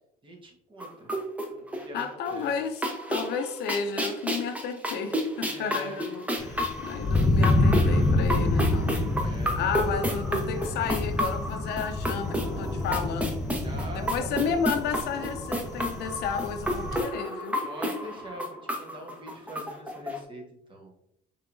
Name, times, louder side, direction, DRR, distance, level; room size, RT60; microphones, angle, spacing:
voice 1, 0.2-1.1 1.5-2.5 5.4-6.1 9.2-9.6 13.6-14.6 17.6-20.9, right 1 dB, 30° right, 1 dB, 1.3 m, -43 dB
sound 1, 0.8-2.3 2.6-20.2, equal, 10° right, 0.8 m, -32 dB
voice 2, 1.9-2.8 3.1-9.0 9.2-13.4 13.9-17.7, left 6 dB, 75° left, 7 dB, 0.6 m, -32 dB
Thunder, 6.4-17.0, left 2 dB, 20° left, 0.5 m, -27 dB
5.4 x 3.4 x 2.6 m, 0.73 s
cardioid pair, 110°, 17 cm